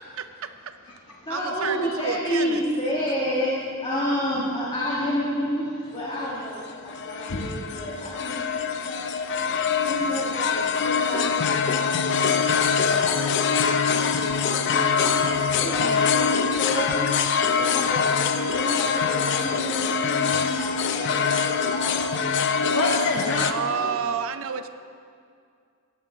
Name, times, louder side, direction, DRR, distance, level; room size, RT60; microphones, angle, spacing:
voice 1, 0.0-0.7 1.3-2.6 15.8-16.1 23.4-24.7, right 6 dB, 65° right, 10 dB, 0.5 m, -30 dB
voice 2, 1.3-9.1 9.7-15.1 15.5-17.1 17.5-22.5 23.1-23.9, equal, 25° left, -7 dB, 1.6 m, -31 dB
sound 1, 6.5-23.5, left 6 dB, 55° left, 0.4 m, -24 dB
voice 3, 6.8-7.9 8.3-10.0 12.9-13.1 17.5-18.0 20.3-20.4 22.6-23.9, left 2 dB, 70° left, -2 dB, 1.0 m, -34 dB
15.5 x 9.3 x 3.8 m, 2.3 s
head